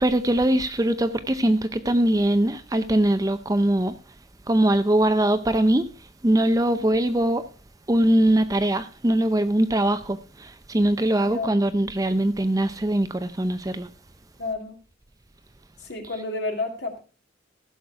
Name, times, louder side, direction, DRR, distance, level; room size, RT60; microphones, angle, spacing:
voice 1, 0.0-3.9 4.5-5.9 6.2-7.5 7.9-13.9, right 1 dB, 20° right, 0.5 m, -22 dB
voice 2, 11.2-11.6 14.4-14.8 15.8-17.0, left 3 dB, 60° left, 2.3 m, -31 dB
15.5 x 6.5 x 4.6 m
head